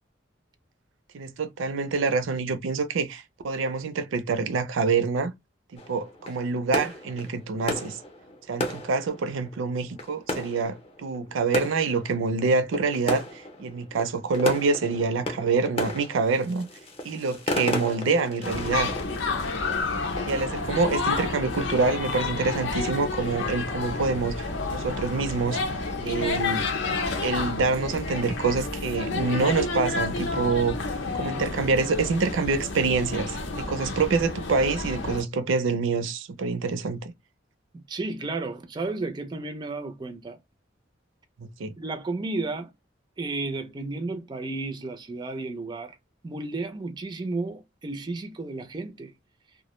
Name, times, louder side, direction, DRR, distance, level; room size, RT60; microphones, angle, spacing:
voice 1, 1.1-5.3 5.7-8.0 8.5-16.7 17.0-18.9 20.2-25.6 26.0-26.6 27.2-30.9 31.1-37.1 41.4-41.7, right 4 dB, 90° right, 0.4 m, -26 dB
sound 1, 5.8-21.5, left 1 dB, 30° left, 0.6 m, -35 dB
sound 2, 18.4-35.2, left 3 dB, 75° left, 0.6 m, -30 dB
voice 2, 37.7-40.4 41.8-42.7 43.2-46.0 46.2-49.1, right 3 dB, 25° right, 0.3 m, -33 dB
2.2 x 2.0 x 3.0 m
head